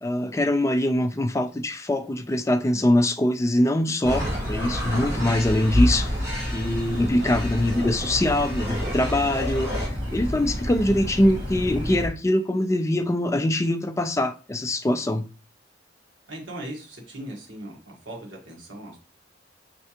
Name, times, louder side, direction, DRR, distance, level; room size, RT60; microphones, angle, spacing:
voice 1, 0.0-6.1 6.5-15.2, left 1 dB, 15° left, 0.4 m, -23 dB
sound 1, 4.0-9.9, equal, 15° right, 2.1 m, -34 dB
sound 2, 4.0-12.1, left 1 dB, 55° right, 1.6 m, -29 dB
voice 2, 16.3-19.0, right 1 dB, 75° right, 1.4 m, -38 dB
4.6 x 3.3 x 2.8 m
head